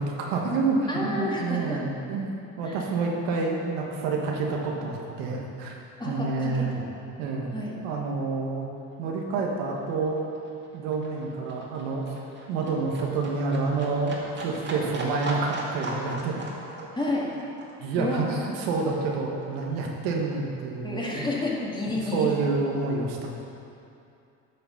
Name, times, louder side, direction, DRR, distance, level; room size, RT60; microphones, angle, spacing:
voice 1, 0.0-5.8 6.0-6.8 7.2-7.5 7.8-8.6 9.0-10.2 10.7-12.1 12.5-16.4 17.8-21.3 22.1-23.3, right 4 dB, 80° right, 0 dB, 1.4 m, -28 dB
voice 2, 0.9-1.8 2.6-2.8 6.0-6.8 7.5-7.7 16.9-17.3 18.0-18.3 20.8-22.3, left 2 dB, 15° left, -4 dB, 2.2 m, -30 dB
Livestock farm animals working animals, 8.6-19.6 19.9-20.9 21.3-21.4, right 2 dB, 30° right, 2.2 m, -39 dB
9.2 x 5.9 x 5.8 m, 2.6 s
supercardioid pair, 80°, 33 cm